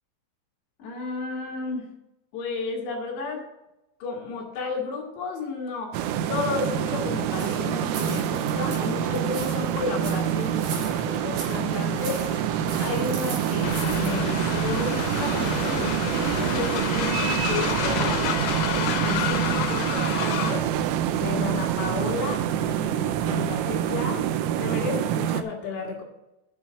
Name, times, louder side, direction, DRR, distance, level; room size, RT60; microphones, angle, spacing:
voice 1, 0.8-1.9 2.3-3.5 4.0-6.0 6.2-18.4 18.7-20.7 21.1-24.3 24.6-26.0, left 4 dB, 65° left, 0 dB, 3.2 m, -32 dB
sound 1, 5.9-25.4, right 10 dB, 85° right, 3.2 m, -26 dB
sound 2, 7.3-22.4, right 3 dB, 70° right, 4.7 m, -39 dB
Train, 13.6-20.7, left 13 dB, 90° left, 3.3 m, -30 dB
8.3 x 6.1 x 6.7 m, 0.94 s
omnidirectional pair, 5.9 m